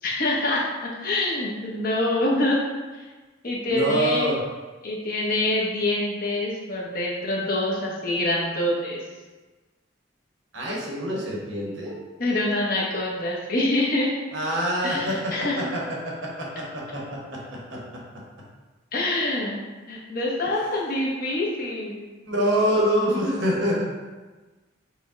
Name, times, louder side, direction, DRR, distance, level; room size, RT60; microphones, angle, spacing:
voice 1, 0.0-2.6 2.9-3.0 3.4-4.3 4.8-9.0 12.2-14.1 14.8-15.6 18.9-19.6 19.9-22.1, left 1 dB, 45° left, -4 dB, 0.8 m, -25 dB
voice 2, 3.7-4.4 10.5-12.0 14.3-17.8 18.1-18.2 22.2-23.8, equal, 80° right, -3 dB, 1.0 m, -26 dB
4.9 x 2.1 x 3.6 m, 1.3 s
head